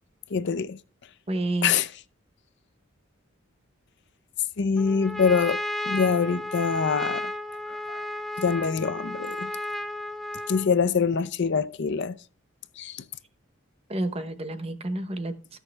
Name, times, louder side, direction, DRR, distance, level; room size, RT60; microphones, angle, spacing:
voice 1, 0.3-0.8 1.6-1.9 4.6-7.3 7.7-8.1 8.4-9.5 10.5-12.1 12.8-13.0, left 5 dB, 55° left, 0.5 m, -25 dB
voice 2, 1.3-1.8 13.9-15.6, right 1 dB, 30° right, 0.9 m, -30 dB
Trumpet, 4.8-10.8, left 1 dB, ahead, 0.4 m, -33 dB
14.0 x 6.3 x 3.3 m
head